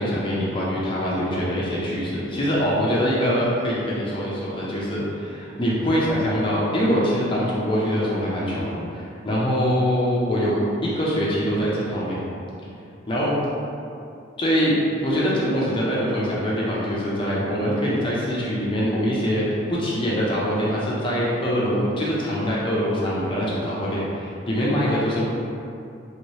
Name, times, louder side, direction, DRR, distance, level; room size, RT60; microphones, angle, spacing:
voice 1, 0.0-12.2 13.1-13.4 14.4-14.8 15.0-25.2, equal, 25° left, -6 dB, 0.5 m, -23 dB
3.1 x 2.8 x 3.1 m, 2.6 s
head